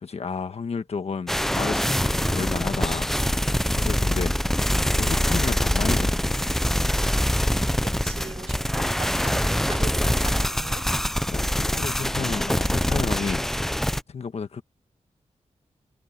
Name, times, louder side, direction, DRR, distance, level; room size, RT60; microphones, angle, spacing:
voice 1, 0.0-3.1 3.7-4.4 4.9-6.2 11.3-13.4 14.1-14.6, left 5 dB, 55° left, 1.4 m, -31 dB
sound 1, 1.3-14.0, equal, 5° left, 0.5 m, -24 dB
voice 2, 7.8-10.9, right 5 dB, 55° right, 4.1 m, -40 dB
wide cardioid pair, 135°, 13 cm